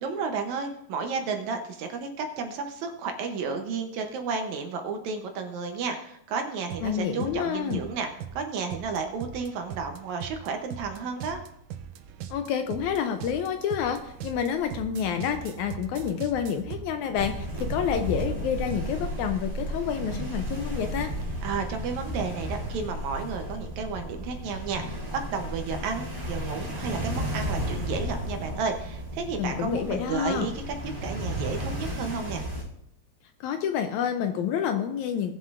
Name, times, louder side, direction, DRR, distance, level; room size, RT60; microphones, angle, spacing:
voice 1, 0.0-11.4 21.4-32.5, right 5 dB, 70° right, 5 dB, 2.0 m, -32 dB
sound 1, 6.7-18.9, right 9 dB, 90° right, 2.3 m, -41 dB
voice 2, 6.8-7.8 12.3-21.1 29.4-30.5 33.4-35.3, left 8 dB, 80° left, 7 dB, 1.8 m, -28 dB
sound 2, 17.1-32.6, equal, 15° right, 2.2 m, -33 dB
19.5 x 7.3 x 2.5 m, 0.77 s
omnidirectional pair, 3.7 m